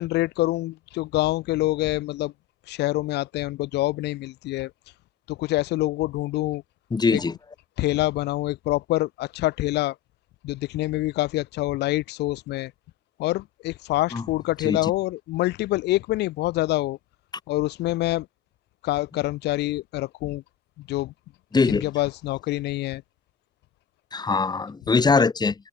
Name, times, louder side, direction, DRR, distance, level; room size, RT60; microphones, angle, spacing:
voice 1, 0.0-2.3 2.7-4.7 5.3-6.6 7.1-7.2 7.8-10.0 10.4-12.7 13.2-17.0 17.5-18.3 18.8-20.4 20.8-21.1 21.7-23.0, left 17 dB, 80° left, 4.3 m, -26 dB
voice 2, 6.9-7.3 14.1-14.2 14.6-14.8 21.5-21.8 24.1-25.5, left 4 dB, 25° left, 4.8 m, -21 dB
open air
cardioid pair, 110°, 17 cm